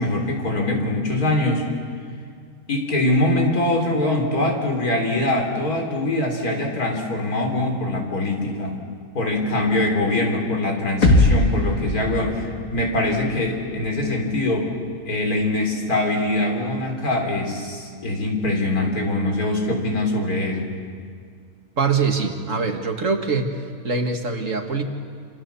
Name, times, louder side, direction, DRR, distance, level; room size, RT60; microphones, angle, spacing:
voice 1, 0.0-1.7 2.7-8.8 9.1-14.7 15.1-20.7, left 1 dB, 85° left, 2 dB, 4.3 m, -23 dB
sound 1, 11.0-14.9, left 1 dB, 60° left, 2.8 m, -22 dB
voice 2, 21.8-23.5 23.8-24.8, right 4 dB, 60° right, 4 dB, 2.3 m, -23 dB
27.5 x 27.0 x 7.1 m, 2.1 s
omnidirectional pair, 1.5 m